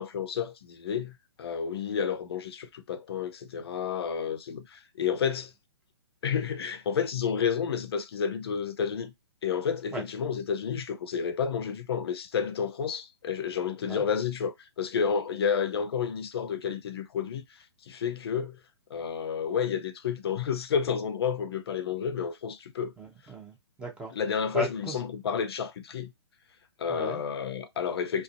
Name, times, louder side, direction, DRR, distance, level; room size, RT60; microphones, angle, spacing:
voice 1, 0.0-5.5 6.2-9.1 9.4-18.6 18.9-22.9 24.1-26.1 26.8-28.2, left 7 dB, 60° left, 0.4 m, -30 dB
voice 2, 23.0-24.1 24.5-25.0 26.9-27.2, right 1 dB, 5° right, 0.5 m, -36 dB
2.4 x 2.2 x 2.4 m
figure-of-eight pair, 125°, 15 cm